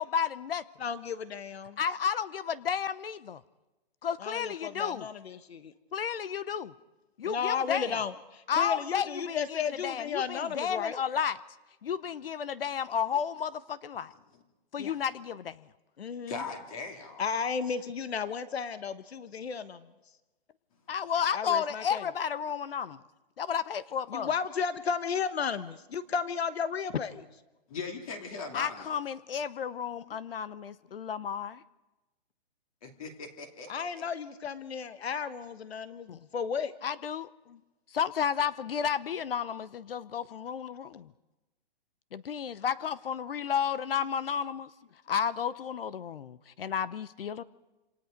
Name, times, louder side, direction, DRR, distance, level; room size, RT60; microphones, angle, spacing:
voice 1, 0.0-0.6 1.8-3.4 4.0-5.1 5.9-6.7 7.2-8.0 8.5-11.4 11.8-14.1 14.7-15.6 20.9-23.0 23.4-24.3 28.5-31.6 36.1-36.2 36.8-37.6 37.9-41.1 42.1-44.7 45.1-47.4, left 7 dB, 65° left, 16 dB, 0.9 m, -32 dB
voice 2, 0.8-1.8 4.2-5.7 7.2-11.0 14.8-14.9 16.0-16.4 17.2-19.9 21.3-22.1 24.1-27.2 33.7-36.7, left 6 dB, 90° left, 12 dB, 1.3 m, -34 dB
voice 3, 16.3-17.2 27.7-29.0 32.8-34.1, left 4 dB, 35° left, 4 dB, 2.7 m, -40 dB
27.5 x 27.0 x 5.2 m, 1.1 s
hypercardioid pair, 170°, 30 cm